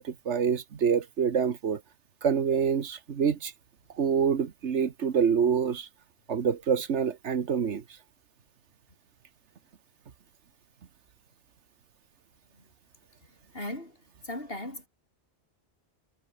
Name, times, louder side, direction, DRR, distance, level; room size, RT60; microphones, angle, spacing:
voice 1, 0.0-1.8 2.2-3.5 4.0-5.9 6.3-7.8, right 7 dB, 90° right, 1.6 m, -26 dB
voice 2, 13.5-14.0 14.2-14.9, left 1 dB, 55° left, 6.9 m, -37 dB
omnidirectional pair, 1.1 m